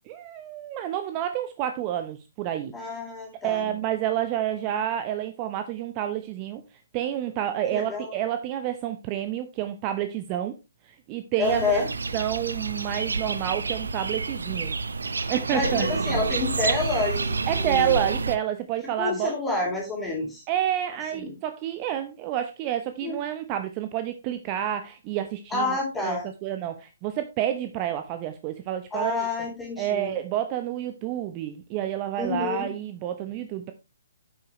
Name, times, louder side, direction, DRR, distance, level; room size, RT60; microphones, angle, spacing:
voice 1, 0.1-2.7 3.4-6.6 6.9-10.6 11.1-11.8 12.1-14.7 15.3-15.9 17.5-19.7 20.5-29.3 29.8-33.7, right 11 dB, 30° right, 8 dB, 0.8 m, -29 dB
voice 2, 2.7-3.7 7.7-8.1 11.4-11.9 15.5-18.0 19.0-20.4 21.1-21.3 23.0-23.2 25.5-26.3 28.9-30.1 32.2-32.7, left 3 dB, 10° left, -3 dB, 3.7 m, -28 dB
sound 1, 11.4-18.4, right 4 dB, 75° right, 0.8 m, -29 dB
9.5 x 7.7 x 3.1 m, 0.25 s
figure-of-eight pair, 130°, 0 cm